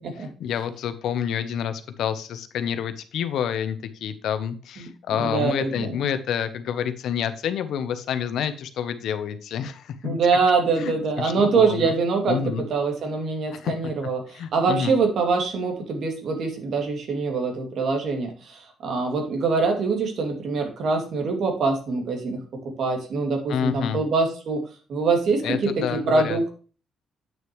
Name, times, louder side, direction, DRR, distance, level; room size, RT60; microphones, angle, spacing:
voice 1, 0.4-10.2 10.8-11.9 12.3-12.6 13.5-13.7 14.3-15.0 23.5-24.0 25.4-26.4, left 8 dB, 75° left, 11 dB, 0.9 m, -28 dB
voice 2, 4.8-6.0 10.0-12.4 12.7-24.6 24.9-26.5, right 4 dB, 65° right, 4 dB, 2.6 m, -24 dB
8.9 x 6.5 x 3.2 m, 0.37 s
cardioid pair, 90°, 0 cm